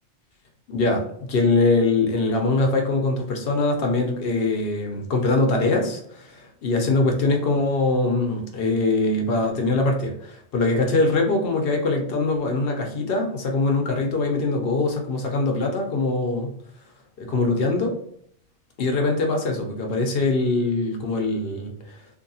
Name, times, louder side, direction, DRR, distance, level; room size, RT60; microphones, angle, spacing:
voice 1, 0.7-16.5 17.2-17.9 18.8-22.0, left 2 dB, 65° left, 2 dB, 0.8 m, -23 dB
2.7 x 2.6 x 2.7 m, 0.67 s
omnidirectional pair, 1.1 m